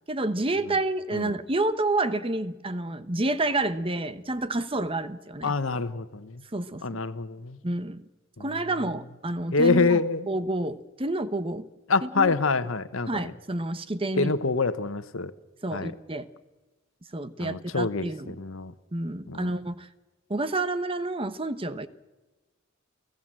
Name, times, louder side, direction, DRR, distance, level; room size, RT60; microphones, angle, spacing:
voice 1, 0.1-5.5 6.5-7.0 7.6-8.0 8.4-10.0 10.3-11.7 12.0-12.3 13.1-14.3 15.6-16.3 17.1-18.4 18.9-19.9 20.3-21.9, right 2 dB, 30° right, 12 dB, 1.0 m, -29 dB
voice 2, 5.4-6.4 6.8-7.6 8.4-8.5 9.5-10.3 11.9-13.2 14.2-15.3 15.7-15.9 17.4-18.7 19.3-19.5, left 4 dB, 90° left, 12 dB, 1.1 m, -26 dB
29.0 x 16.5 x 7.6 m, 1.2 s
head